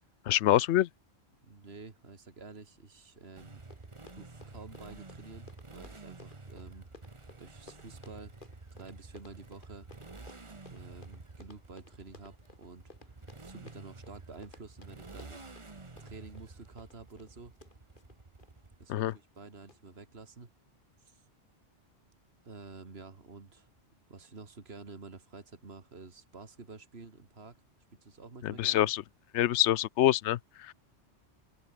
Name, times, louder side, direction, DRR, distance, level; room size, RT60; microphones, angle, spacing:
voice 1, 0.3-0.9 18.9-19.1 28.4-29.0 29.3-30.4 30.7-30.8, left 13 dB, 85° left, 0.9 m, -25 dB
voice 2, 1.4-3.6 4.1-6.9 7.4-8.3 8.7-9.9 10.7-15.5 16.0-17.5 18.8-20.5 21.0-21.2 22.4-23.7 24.1-27.6 28.0-28.9, right 4 dB, 60° right, 2.6 m, -50 dB
Run, 3.3-3.4 3.6-18.5 19.1-19.4 19.7-19.8, left 3 dB, 45° left, 2.4 m, -57 dB
Motorcycle, 3.4-19.1, right 3 dB, 25° right, 1.4 m, -50 dB
open air
omnidirectional pair, 1.2 m